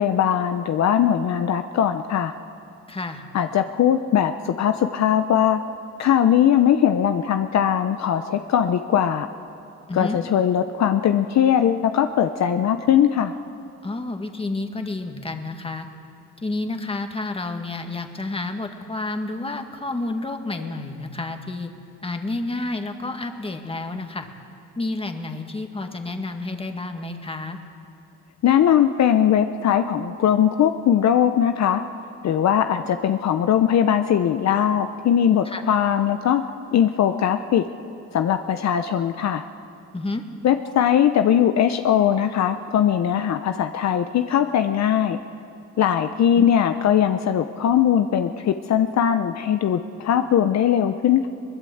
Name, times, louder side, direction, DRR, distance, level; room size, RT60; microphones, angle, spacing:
voice 1, 0.0-2.3 3.3-5.6 6.0-9.3 9.9-13.3 28.4-31.8 32.2-36.4 36.7-37.6 38.1-39.4 40.4-45.2 45.8-51.3, left 9 dB, 60° left, 8 dB, 0.8 m, -20 dB
voice 2, 2.9-3.2 9.9-10.2 13.8-15.9 16.4-21.7 22.0-24.3 24.8-27.6 35.5-35.6 39.9-40.2 46.4-46.5, left 2 dB, 20° left, 5 dB, 2.0 m, -30 dB
22.0 x 20.0 x 8.0 m, 2.8 s
cardioid pair, 90°, 30 cm